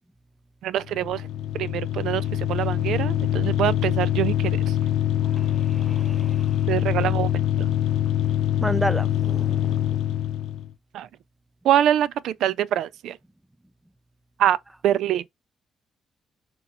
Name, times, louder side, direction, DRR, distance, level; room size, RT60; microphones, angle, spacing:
voice 1, 0.6-1.3 1.5-4.7 6.7-7.3 7.6-7.7 10.9-11.1 11.6-13.2 14.4-14.6 14.8-15.2, right 11 dB, 80° right, 0.3 m, -24 dB
sound 1, 0.8-10.7, left 11 dB, 85° left, 0.7 m, -24 dB
voice 2, 5.2-6.6 8.6-10.0, right 1 dB, 10° right, 0.5 m, -32 dB
3.8 x 2.8 x 4.1 m
cardioid pair, 90°, 0 cm